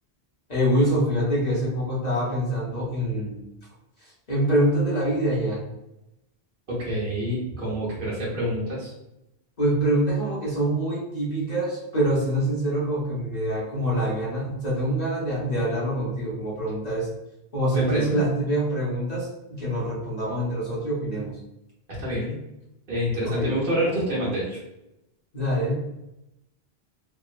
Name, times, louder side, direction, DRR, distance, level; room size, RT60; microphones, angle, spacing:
voice 1, 0.5-3.4 4.0-5.6 9.6-17.1 17.5-21.4 23.2-23.5 25.3-25.8, right 1 dB, 45° left, -7 dB, 0.9 m, -25 dB
voice 2, 6.7-8.9 17.7-18.2 22.0-22.4 22.9-24.6, equal, 55° right, -6 dB, 1.0 m, -27 dB
2.9 x 2.1 x 2.4 m, 0.89 s
omnidirectional pair, 1.1 m